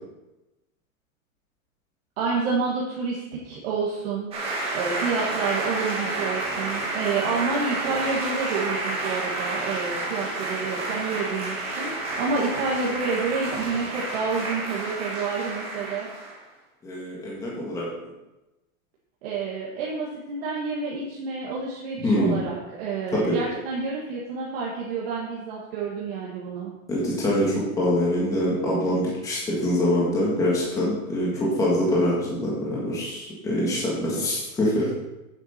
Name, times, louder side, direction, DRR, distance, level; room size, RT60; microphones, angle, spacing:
voice 1, 2.2-4.3 4.7-16.1 19.2-26.7, right 4 dB, 45° right, -5 dB, 1.8 m, -29 dB
sound 1, 4.3-16.4, right 2 dB, 15° right, 1.5 m, -30 dB
voice 2, 16.8-17.9 22.0-22.4 23.2-23.4 26.9-27.5 27.8-31.3 31.6-34.9, left 1 dB, 10° left, -6 dB, 1.6 m, -24 dB
9.5 x 7.3 x 4.4 m, 1.0 s
supercardioid pair, 175°, 41 cm